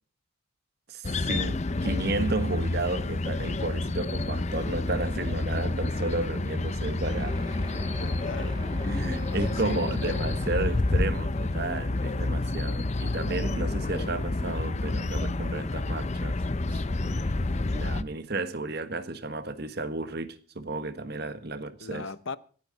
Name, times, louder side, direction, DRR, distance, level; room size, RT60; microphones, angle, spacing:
voice 1, 0.9-7.3 8.4-8.5 8.9-16.4 16.7-22.1, right 2 dB, 50° right, 1.4 m, -33 dB
sound 1, 1.0-18.0, left 2 dB, 30° left, 0.6 m, -29 dB
sound 2, 7.0-12.4, right 1 dB, 20° right, 2.1 m, -43 dB
voice 2, 8.0-9.9 21.8-22.4, left 4 dB, 65° left, 0.8 m, -39 dB
26.5 x 9.2 x 4.1 m
head